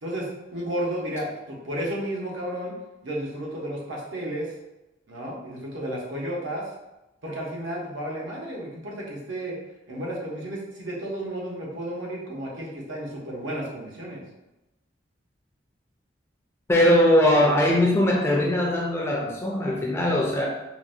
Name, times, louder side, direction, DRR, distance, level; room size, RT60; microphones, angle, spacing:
voice 1, 0.0-2.7 3.0-4.5 5.1-6.7 7.2-9.5 9.9-14.2, right 1 dB, 75° right, -3 dB, 0.8 m, -32 dB
voice 2, 16.7-20.5, left 1 dB, 15° left, -2 dB, 0.4 m, -20 dB
3.8 x 2.1 x 2.5 m, 0.97 s
head